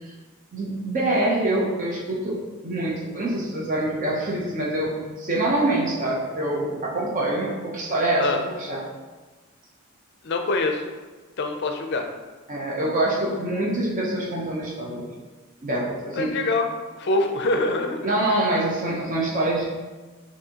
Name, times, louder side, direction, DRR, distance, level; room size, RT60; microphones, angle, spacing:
voice 1, 0.5-2.4 2.6-8.8 12.5-15.0 15.6-16.4 18.0-19.7, right 1 dB, 40° right, -4 dB, 0.7 m, -25 dB
voice 2, 10.2-10.8 11.4-12.1 16.2-16.7 16.9-18.0, left 2 dB, 50° left, 4 dB, 0.4 m, -24 dB
5.9 x 2.7 x 2.9 m, 1.3 s
head